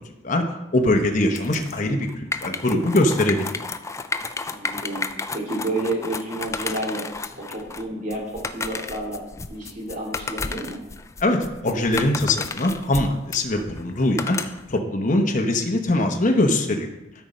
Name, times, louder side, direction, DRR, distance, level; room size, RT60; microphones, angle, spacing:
voice 1, 0.2-3.6 11.2-16.9, left 1 dB, 40° left, 2 dB, 0.9 m, -22 dB
sound 1, 1.3-14.8, left 4 dB, 15° left, 0.3 m, -32 dB
voice 2, 4.5-5.1 5.3-7.0 7.4-9.2 9.5-10.8, right 2 dB, 45° right, -3 dB, 2.9 m, -30 dB
12.5 x 5.2 x 4.3 m, 0.94 s
head